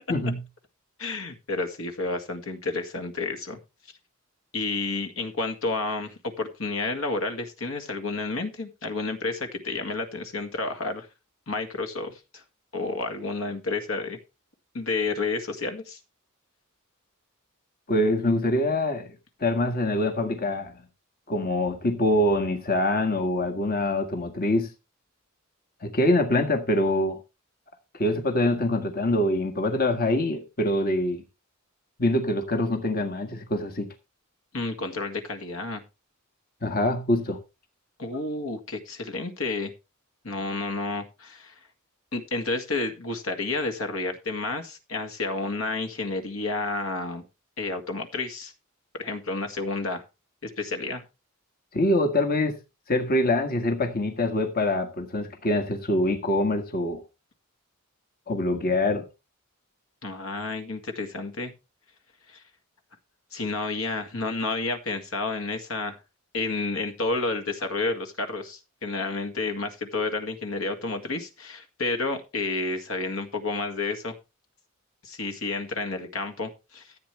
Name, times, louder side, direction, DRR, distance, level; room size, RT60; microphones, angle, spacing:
voice 1, 1.0-3.6 4.5-11.1 11.5-12.4 12.7-14.2 14.7-16.0 34.5-35.8 38.0-39.7 40.2-41.5 42.1-47.2 47.6-48.5 48.9-50.0 50.4-51.0 60.0-61.5 62.3-62.4 63.3-66.0 66.3-74.2 75.0-76.9, left 3 dB, 70° left, 2.1 m, -30 dB
voice 2, 17.9-19.1 19.4-20.7 21.3-24.7 25.8-27.2 27.9-31.2 32.0-33.9 36.6-37.4 51.7-52.6 52.9-57.0 58.3-59.1, left 1 dB, 45° left, 1.6 m, -24 dB
14.5 x 8.4 x 3.3 m
head